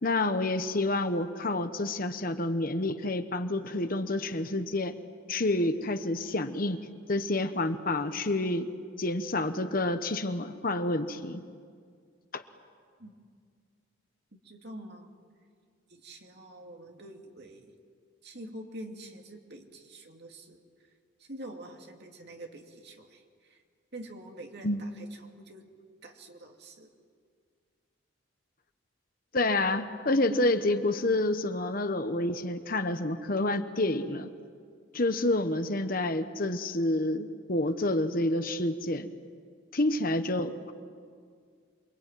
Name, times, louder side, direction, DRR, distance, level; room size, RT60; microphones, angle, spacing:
voice 1, 0.0-4.9 5.3-6.8 7.1-8.7 9.0-11.4 12.3-12.4 24.6-24.8 29.3-34.3 34.9-39.1 39.7-40.7, left 2 dB, 45° left, 9 dB, 1.1 m, -28 dB
voice 2, 14.4-15.1 15.9-17.7 18.2-20.9 21.2-23.6 23.9-25.7 26.0-26.9, right 1 dB, 55° right, 2 dB, 2.8 m, -46 dB
27.5 x 23.5 x 9.2 m, 2.1 s
head